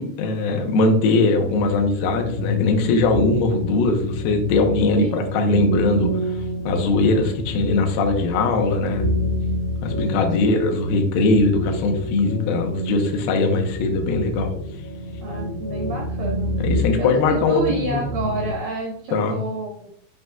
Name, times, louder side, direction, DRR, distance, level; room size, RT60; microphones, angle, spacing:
voice 1, 0.0-6.4 6.7-9.0 9.8-14.5 16.6-18.0 19.1-19.4, left 3 dB, 90° left, 3 dB, 2.0 m, -20 dB
sound 1, 1.4-18.6, left 1 dB, 50° left, 1.8 m, -28 dB
voice 2, 5.0-5.3 10.4-10.7 15.2-19.9, right 2 dB, 85° right, 0 dB, 2.0 m, -30 dB
8.8 x 5.3 x 2.3 m, 0.65 s
omnidirectional pair, 5.6 m